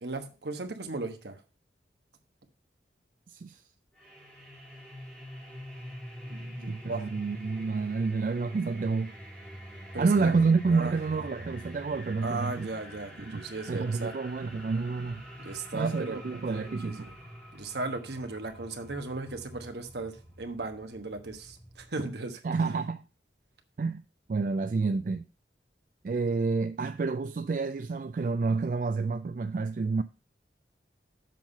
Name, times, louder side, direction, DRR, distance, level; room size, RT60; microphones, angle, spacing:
voice 1, 0.0-1.4 6.3-7.0 9.9-10.3 10.7-10.9 12.2-14.2 15.4-17.1 17.5-22.4, right 3 dB, 70° right, 1.2 m, -36 dB
voice 2, 3.3-3.6 6.7-9.1 10.0-12.7 13.2-13.4 13.7-15.2 15.7-17.0 22.4-23.0 23.8-24.0 24.3-25.2 26.0-30.0, right 4 dB, 45° right, 0.3 m, -29 dB
sound 1, 4.0-21.9, equal, 5° left, 3.6 m, -46 dB
7.5 x 5.6 x 5.4 m
head